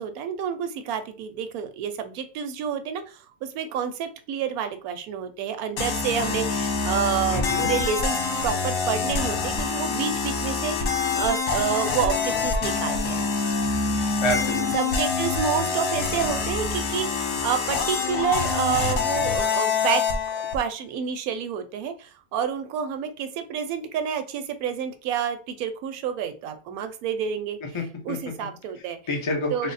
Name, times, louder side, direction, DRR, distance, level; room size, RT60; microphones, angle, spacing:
voice 1, 0.0-13.3 14.7-20.0 20.3-27.6 28.0-29.0 29.5-29.7, right 8 dB, 80° right, 8 dB, 1.0 m, -29 dB
sound 1, 5.8-20.6, left 4 dB, 70° left, 1.1 m, -26 dB
voice 2, 7.3-7.7 14.2-14.7 27.7-28.2 28.8-29.7, left 2 dB, 35° left, 2 dB, 0.5 m, -28 dB
3.4 x 2.0 x 3.9 m, 0.37 s
omnidirectional pair, 1.5 m